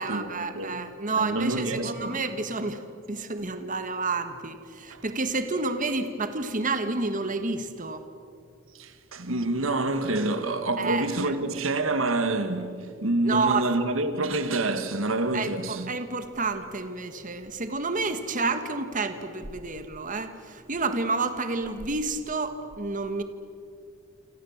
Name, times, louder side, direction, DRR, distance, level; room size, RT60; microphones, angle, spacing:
voice 1, 0.0-8.0 10.8-11.3 13.2-13.7 15.3-23.2, right 3 dB, 40° right, 1.6 m, -30 dB
voice 2, 0.5-0.9 1.2-2.2 4.9-5.0 8.7-15.9, right 2 dB, 85° right, 1.8 m, -27 dB
29.0 x 26.0 x 7.3 m
head